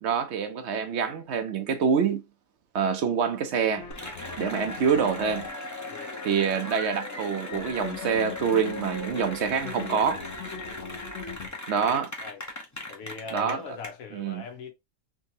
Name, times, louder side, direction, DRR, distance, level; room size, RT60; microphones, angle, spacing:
voice 1, 0.0-2.2 2.7-3.9 4.4-5.5 6.2-10.2 11.7-12.1 13.3-13.6 14.1-14.4, right 6 dB, 65° right, 0.7 m, -26 dB
sound 1, 3.8-5.5 7.5-11.5, left 7 dB, 55° left, 0.9 m, -41 dB
Cheering / Applause, 3.9-13.9, left 2 dB, 20° left, 0.5 m, -38 dB
voice 2, 5.9-6.3 10.7-11.0 11.8-12.4 12.9-14.7, left 5 dB, 85° left, 1.3 m, -41 dB
3.5 x 3.0 x 2.7 m
omnidirectional pair, 1.4 m